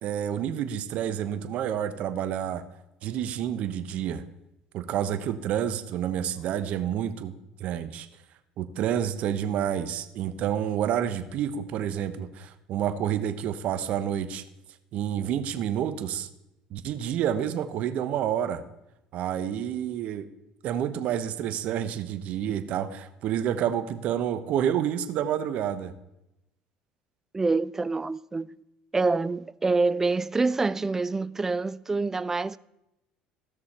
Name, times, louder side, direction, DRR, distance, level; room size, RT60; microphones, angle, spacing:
voice 1, 0.0-2.6 3.0-4.2 4.7-7.3 7.6-8.1 8.6-14.4 14.9-16.3 16.7-18.6 19.1-20.3 20.6-25.9, right 10 dB, 60° right, 0.9 m, -29 dB
voice 2, 27.3-28.6 28.9-32.6, right 3 dB, 15° right, 0.3 m, -26 dB
16.0 x 6.4 x 4.3 m
supercardioid pair, 105°, 3 cm